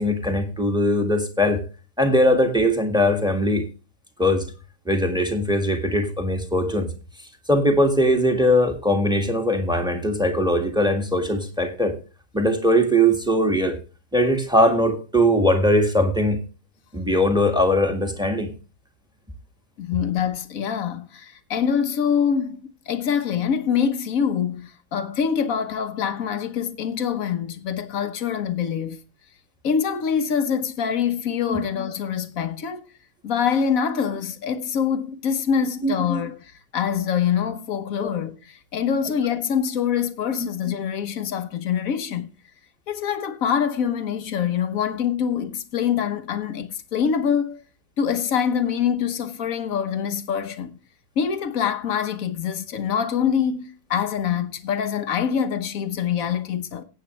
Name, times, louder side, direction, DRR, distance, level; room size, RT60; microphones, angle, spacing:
voice 1, 0.0-1.6 2.0-3.6 4.2-4.5 4.8-6.9 7.5-11.9 12.3-13.8 14.1-16.4 16.9-18.5 31.5-31.6 35.8-35.9 38.0-38.1, equal, ahead, 1.5 m, -20 dB
voice 2, 19.8-29.0 29.6-32.8 33.2-42.3 42.9-47.6 48.0-50.8 51.2-56.8, left 7 dB, 50° left, 1.2 m, -25 dB
17.5 x 8.5 x 3.2 m
omnidirectional pair, 2.3 m